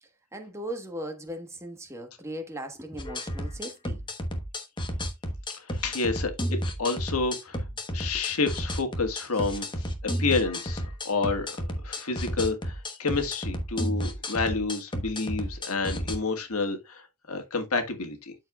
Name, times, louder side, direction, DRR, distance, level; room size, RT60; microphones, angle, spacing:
voice 1, 0.0-4.0 7.9-8.2 9.3-9.5 15.4-15.5, right 1 dB, 15° right, 1.2 m, -39 dB
sound 1, 3.0-16.2, equal, 20° left, 1.0 m, -32 dB
voice 2, 5.6-7.6 7.9-11.6 11.8-18.3, left 4 dB, 85° left, 1.6 m, -29 dB
12.5 x 4.6 x 2.3 m
head